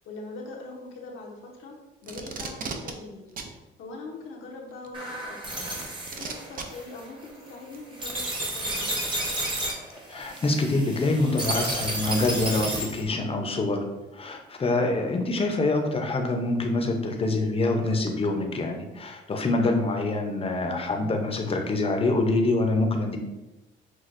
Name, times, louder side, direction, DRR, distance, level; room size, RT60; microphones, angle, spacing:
voice 1, 0.0-1.8 2.0-3.3 3.8-5.7 6.2-8.9, left 2 dB, 80° left, -1 dB, 0.9 m, -42 dB
Packing tape duct tape, 2.1-2.9 3.4-3.5 4.8-4.9 6.1-6.6 7.7-7.8, right 5 dB, 45° right, 0.5 m, -35 dB
sound 1, 4.9-13.0, right 1 dB, 25° right, 1.1 m, -32 dB
voice 2, 10.1-13.8 14.1-23.2, left 2 dB, 30° left, 3 dB, 0.7 m, -25 dB
6.1 x 2.3 x 2.5 m, 1.0 s
cardioid pair, 90°, 20 cm